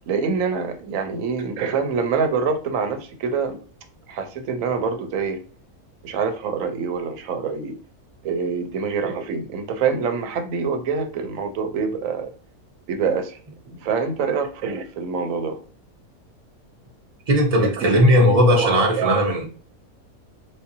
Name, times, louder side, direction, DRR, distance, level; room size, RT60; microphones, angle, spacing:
voice 1, 0.1-3.6 4.1-5.4 6.0-7.8 8.2-12.3 12.9-13.4 13.6-15.6 17.6-19.4, right 5 dB, 70° right, 6 dB, 0.9 m, -25 dB
voice 2, 17.3-19.4, equal, 45° right, 0 dB, 0.5 m, -17 dB
3.7 x 2.6 x 2.6 m, 0.39 s
omnidirectional pair, 1.5 m